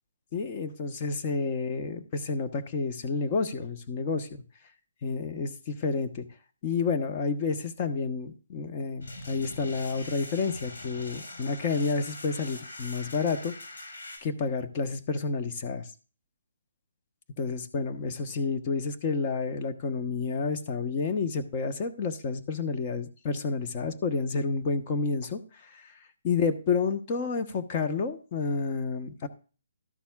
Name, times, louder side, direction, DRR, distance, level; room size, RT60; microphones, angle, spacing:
voice 1, 0.3-4.4 5.0-6.2 6.6-13.5 14.2-15.9 17.4-26.0 26.2-29.3, left 4 dB, 35° left, 6 dB, 1.2 m, -30 dB
sound 1, 9.0-14.2, left 2 dB, 75° left, 4.9 m, -43 dB
12.5 x 11.5 x 2.5 m, 0.36 s
hypercardioid pair, 150°, 0 cm